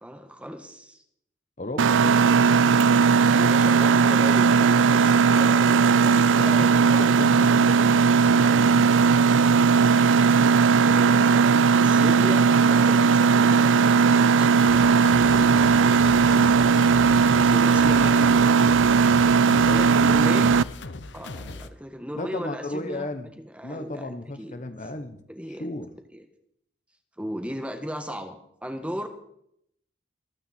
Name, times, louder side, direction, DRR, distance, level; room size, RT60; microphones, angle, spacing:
voice 1, 0.0-1.0 3.3-7.8 10.8-15.1 17.1-18.8 19.6-20.6 21.1-23.1 23.4-24.6 25.3-25.7 26.1-26.2 27.2-29.1, equal, 5° right, 7 dB, 1.4 m, -36 dB
voice 2, 1.6-2.3 6.4-9.1 15.3-17.5 19.5-19.8 20.1-20.3 22.1-23.3 23.6-25.9, left 1 dB, 40° left, 9 dB, 1.0 m, -36 dB
Mechanisms, 1.8-20.6, right 5 dB, 85° right, 0.5 m, -18 dB
sound 1, 14.6-21.7, left 2 dB, 70° left, 0.9 m, -38 dB
25.5 x 9.0 x 4.3 m, 0.71 s
head